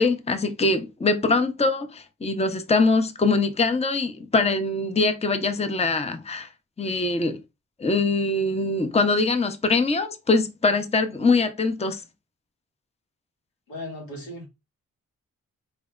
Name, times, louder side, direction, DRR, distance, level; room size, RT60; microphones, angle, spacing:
voice 1, 0.0-6.5 6.8-7.4 7.8-12.0, left 3 dB, 20° left, 0.7 m, -23 dB
voice 2, 13.7-14.5, left 1 dB, 85° left, 1.9 m, -36 dB
4.3 x 3.3 x 2.4 m
supercardioid pair, 45°, 34 cm